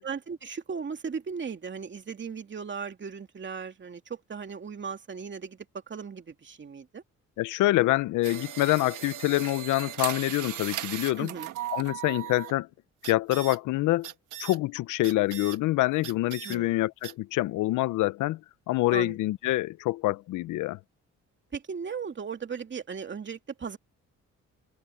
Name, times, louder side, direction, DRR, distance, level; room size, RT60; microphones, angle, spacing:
voice 1, 0.0-7.0 11.2-11.5 16.4-16.8 18.9-19.2 21.5-23.8, right 6 dB, 40° right, 2.7 m, -37 dB
voice 2, 7.4-11.3 11.7-12.7 13.0-14.1 14.4-18.4 18.7-20.8, left 17 dB, 90° left, 0.7 m, -26 dB
sound 1, 8.2-12.5 13.0-13.6 14.0-14.6 15.0-15.6 16.0-16.6 17.0-17.1, right 13 dB, 85° right, 1.6 m, -37 dB
open air
cardioid pair, 90°, 30 cm